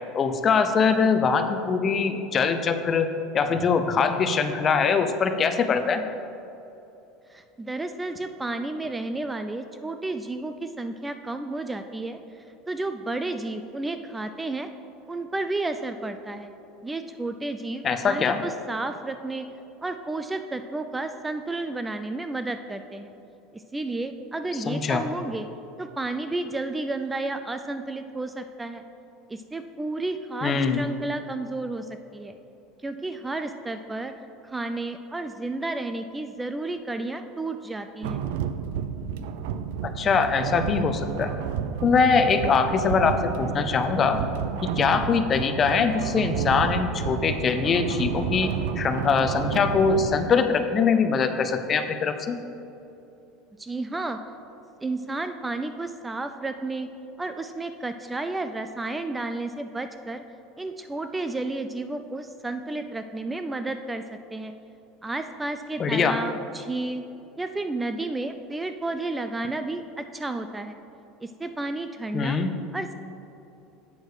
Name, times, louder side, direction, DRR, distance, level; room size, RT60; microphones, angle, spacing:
voice 1, 0.1-3.1 3.3-6.0 17.8-18.4 24.7-25.0 30.4-30.8 39.8-41.3 41.8-44.2 44.6-52.4 65.8-66.2 72.1-72.6, left 5 dB, 30° left, 8 dB, 0.6 m, -23 dB
voice 2, 7.3-14.7 15.1-16.5 16.8-19.5 19.8-23.1 23.5-25.5 25.8-28.8 29.3-32.3 32.8-34.1 34.4-38.2 53.6-54.2 54.8-56.9 57.2-60.2 60.6-64.0 64.3-64.5 65.0-67.0 67.4-70.8 71.2-72.4 72.7-72.9, right 2 dB, 10° right, 8 dB, 0.3 m, -32 dB
sound 1, 38.0-50.2, right 7 dB, 80° right, 0.4 m, -31 dB
8.4 x 6.3 x 4.8 m, 2.8 s
supercardioid pair, 120°, 0 cm